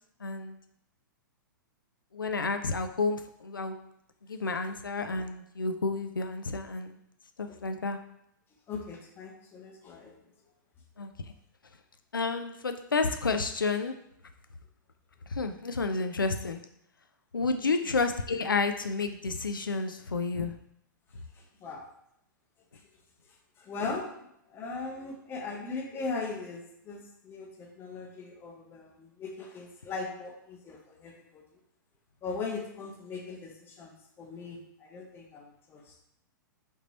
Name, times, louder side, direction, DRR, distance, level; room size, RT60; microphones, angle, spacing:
voice 1, 0.2-0.5 2.1-3.8 4.3-7.0 7.4-8.0 11.0-11.1 12.1-14.0 15.3-16.6 17.3-20.5, left 4 dB, 80° left, 7 dB, 0.4 m, -30 dB
voice 2, 8.7-10.2 17.6-17.8 21.3-21.8 23.6-31.4 32.2-36.0, left 4 dB, 20° left, 1 dB, 0.8 m, -39 dB
5.2 x 3.0 x 2.8 m, 0.75 s
figure-of-eight pair, 110°, 11 cm